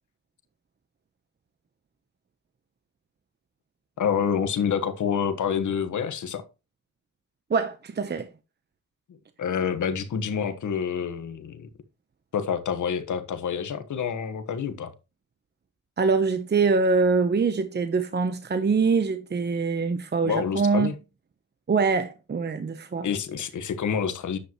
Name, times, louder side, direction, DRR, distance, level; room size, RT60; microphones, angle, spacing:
voice 1, 4.0-6.4 9.4-11.7 12.3-14.9 20.2-20.9 23.0-24.4, left 7 dB, 90° left, 1.3 m, -27 dB
voice 2, 7.5-8.3 16.0-20.9 21.7-23.1, right 4 dB, 35° right, 0.9 m, -24 dB
10.0 x 7.9 x 3.0 m
wide cardioid pair, 105°, 29 cm